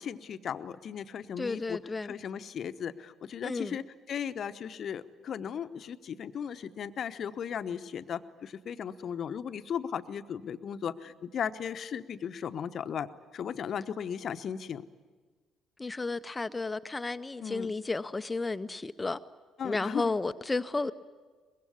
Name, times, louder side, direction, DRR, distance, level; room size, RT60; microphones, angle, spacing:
voice 1, 0.0-13.1 13.3-14.8 17.4-17.7 19.6-20.2, left 8 dB, 45° left, 0.9 m, -36 dB
voice 2, 1.4-2.1 3.4-3.8 15.8-19.2 19.6-20.9, left 3 dB, 20° left, 0.7 m, -32 dB
24.0 x 22.0 x 9.6 m
figure-of-eight pair, 45°, 0 cm